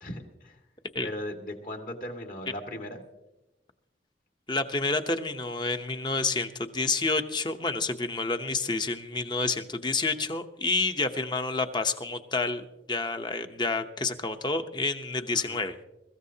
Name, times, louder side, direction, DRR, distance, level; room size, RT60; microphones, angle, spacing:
voice 1, 0.0-0.6 1.0-3.1 15.3-15.6, left 1 dB, 50° left, 3 dB, 1.9 m, -38 dB
voice 2, 4.5-15.8, left 3 dB, 25° left, 8 dB, 0.8 m, -29 dB
22.5 x 14.5 x 2.8 m, 0.96 s
head